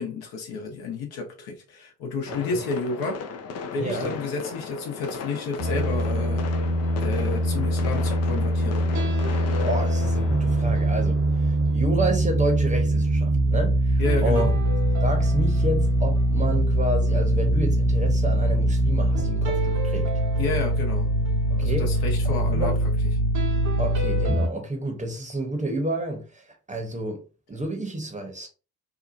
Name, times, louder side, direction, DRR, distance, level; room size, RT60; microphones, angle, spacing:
voice 1, 0.0-3.2 3.7-6.4 7.0-8.9 14.0-14.5 20.4-21.1 21.6-22.7, left 3 dB, 60° left, 0.9 m, -30 dB
sound 1, 2.3-11.8, left 5 dB, 40° left, 0.5 m, -36 dB
voice 2, 2.3-2.6 3.8-4.2 9.6-14.5 15.0-20.1 21.5-21.9 22.2-22.8 23.8-27.2 27.5-28.5, right 1 dB, 15° right, 0.9 m, -30 dB
sound 2, 5.6-24.5, right 1 dB, 45° right, 0.8 m, -23 dB
2.8 x 2.2 x 2.5 m
hypercardioid pair, 50°, 43 cm